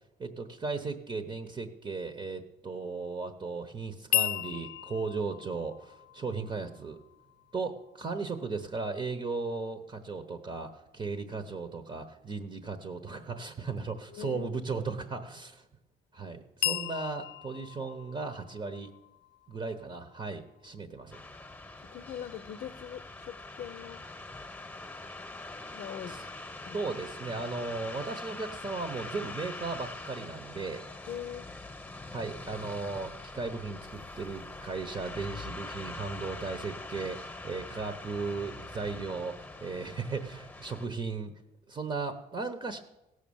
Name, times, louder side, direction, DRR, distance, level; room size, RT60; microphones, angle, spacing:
voice 1, 0.2-7.0 7.5-15.6 16.1-18.9 19.5-21.2 26.1-26.2 26.7-30.8 32.1-41.3 41.7-42.8, right 4 dB, 30° right, 7 dB, 1.1 m, -36 dB
sound 1, 4.1-8.2 16.6-20.4, left 15 dB, 85° left, 0.4 m, -36 dB
voice 2, 14.1-14.5 21.8-24.0 25.7-26.2 26.6-26.8 31.1-31.5, left 10 dB, 55° left, 10 dB, 0.7 m, -41 dB
sound 2, 21.1-40.9, left 2 dB, 10° left, 1.3 m, -43 dB
16.5 x 6.4 x 7.2 m, 0.93 s
cardioid pair, 110°, 17 cm